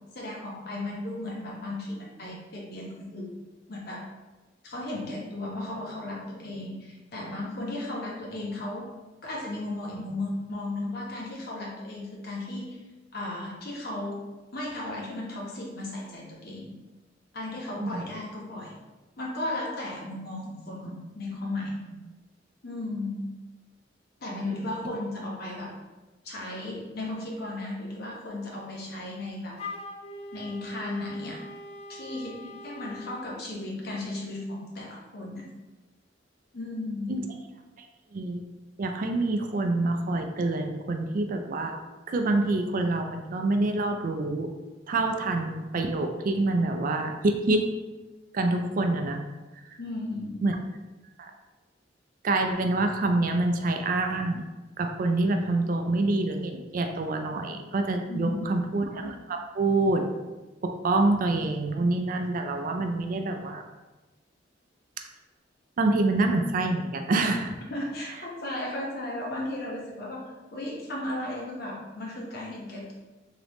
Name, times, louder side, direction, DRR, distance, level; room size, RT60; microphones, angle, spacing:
voice 1, 0.1-3.4 3.7-4.1 4.6-8.9 9.2-12.8 13.1-14.3 14.5-16.8 17.3-18.7 19.2-22.0 22.6-23.3 24.2-25.7 26.2-29.6 30.3-31.4 31.9-35.5 36.5-37.3 49.8-50.5 58.1-58.5 67.7-70.2 70.5-72.9, left 2 dB, 60° left, -3 dB, 1.0 m, -35 dB
Wind instrument woodwind instrument, 29.6-33.2, left 2 dB, 35° left, 0.3 m, -42 dB
voice 2, 38.1-38.4 38.8-41.8 42.1-44.5 44.9-47.7 48.3-49.2 50.4-50.6 51.2-51.3 52.2-54.4 54.8-60.1 60.6-63.6 65.8-67.6, right 2 dB, 50° right, 5 dB, 0.4 m, -26 dB
3.7 x 3.4 x 3.0 m, 1.2 s
head